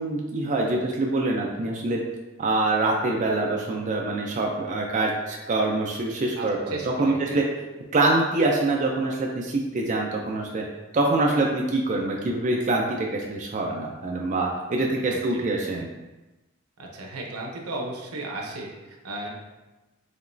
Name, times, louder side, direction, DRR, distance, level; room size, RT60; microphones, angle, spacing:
voice 1, 0.0-2.0 2.4-7.4 7.9-10.6 10.9-15.9, right 2 dB, 35° right, -1 dB, 0.4 m, -25 dB
voice 2, 6.4-7.4 15.0-15.4 16.8-19.3, right 2 dB, 85° right, -1 dB, 0.8 m, -35 dB
5.0 x 3.0 x 2.6 m, 1.1 s
head